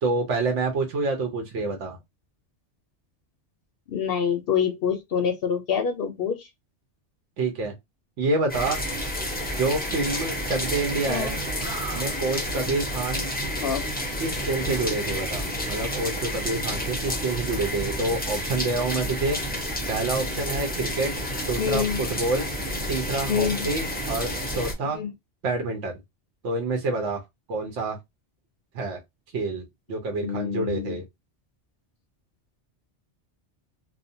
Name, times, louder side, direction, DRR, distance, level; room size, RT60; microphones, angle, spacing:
voice 1, 0.0-2.0 7.4-7.7 8.2-8.8 9.5-11.4 11.9-13.3 14.2-19.4 19.9-21.1 21.5-22.5 22.9-25.0 25.4-25.9 26.4-27.2 27.5-28.0 28.7-29.0 29.3-31.0, right 3 dB, 85° right, 1.0 m, -27 dB
voice 2, 3.9-6.5 11.1-11.3 13.6-13.8 21.6-22.0 23.3-23.7 24.9-25.1 30.2-31.0, left 7 dB, 65° left, 0.7 m, -26 dB
sound 1, 8.5-24.7, equal, 15° left, 0.4 m, -30 dB
Animal, 11.2-11.3 11.6-12.4 14.6-15.4 17.4-18.8, right 1 dB, 45° right, 1.3 m, -38 dB
2.6 x 2.1 x 2.6 m
omnidirectional pair, 1.2 m